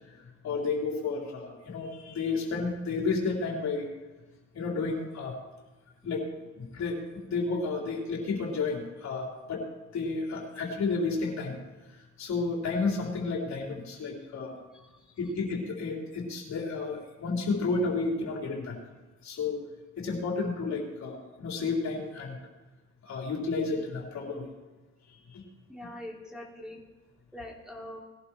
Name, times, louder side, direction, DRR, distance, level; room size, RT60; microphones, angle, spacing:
voice 1, 0.1-3.9 4.5-5.4 6.0-6.3 6.6-7.0 7.3-9.6 9.9-11.5 11.9-14.6 15.2-18.8 19.2-19.6 20.0-22.4 23.0-24.5 25.1-25.4, left 4 dB, 65° left, -2 dB, 3.7 m, -31 dB
voice 2, 25.7-26.8 27.3-28.0, left 1 dB, ahead, -1 dB, 2.8 m, -43 dB
20.0 x 11.5 x 3.0 m, 1.2 s
cardioid pair, 90°, 30 cm